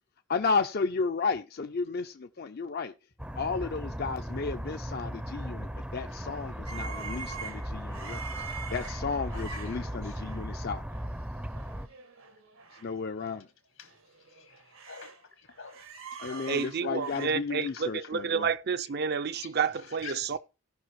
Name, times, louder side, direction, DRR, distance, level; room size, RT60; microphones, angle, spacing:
voice 1, 0.3-2.9 3.4-8.2 8.5-10.8 12.8-13.5 16.2-18.5, left 4 dB, 50° left, 0.5 m, -33 dB
sound 1, 3.2-11.9, equal, 5° right, 0.5 m, -37 dB
sound 2, 6.7-10.5 10.9-11.1 11.4-12.9 13.2-13.3 13.9-15.2 15.5-17.3, right 6 dB, 85° right, 1.8 m, -44 dB
voice 2, 8.4-10.2 13.8-15.9 16.2-16.5 16.8-17.3 17.7-17.8 19.4-19.5 19.9-20.4, left 5 dB, 85° left, 2.1 m, -48 dB
voice 3, 16.5-20.4, right 6 dB, 50° right, 0.5 m, -30 dB
17.0 x 5.7 x 3.1 m
head